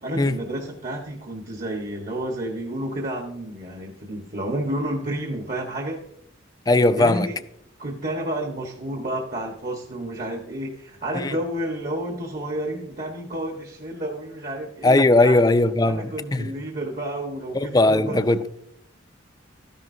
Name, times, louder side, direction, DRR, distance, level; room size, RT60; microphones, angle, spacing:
voice 1, 0.0-6.0 6.9-7.4 7.8-15.4 15.8-18.2, right 1 dB, 45° right, 1.4 m, -30 dB
voice 2, 6.7-7.3 11.1-11.4 14.8-16.5 17.5-18.5, left 2 dB, 20° left, 0.4 m, -19 dB
13.0 x 11.0 x 2.7 m
head